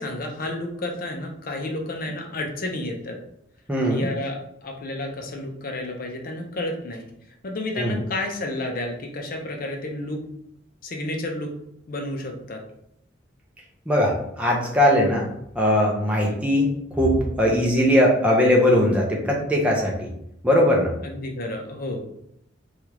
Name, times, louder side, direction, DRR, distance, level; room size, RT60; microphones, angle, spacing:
voice 1, 0.0-3.2 3.9-7.0 7.4-10.2 10.8-11.5 11.9-12.6 16.2-16.4 21.0-22.0, left 1 dB, 45° left, 2 dB, 0.6 m, -31 dB
voice 2, 3.7-4.1 7.8-8.0 13.9-15.3 15.5-20.1 20.4-20.9, left 1 dB, 5° right, -2 dB, 0.5 m, -20 dB
3.3 x 2.4 x 2.9 m, 0.77 s
head